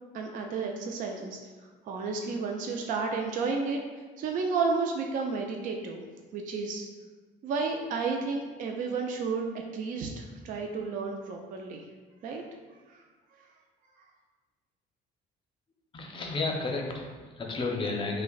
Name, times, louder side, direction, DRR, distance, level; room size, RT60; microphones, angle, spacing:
voice 1, 0.1-1.4 1.8-3.8 4.2-6.0 6.3-6.8 7.4-9.5 9.7-11.8 12.2-12.4 12.9-13.0 13.3-13.5 14.0-14.1, right 4 dB, 50° right, 2 dB, 0.4 m, -32 dB
voice 2, 15.9-18.2, left 3 dB, 30° left, 1 dB, 0.6 m, -32 dB
5.7 x 2.1 x 2.3 m, 1.4 s
cardioid pair, 110°, 17 cm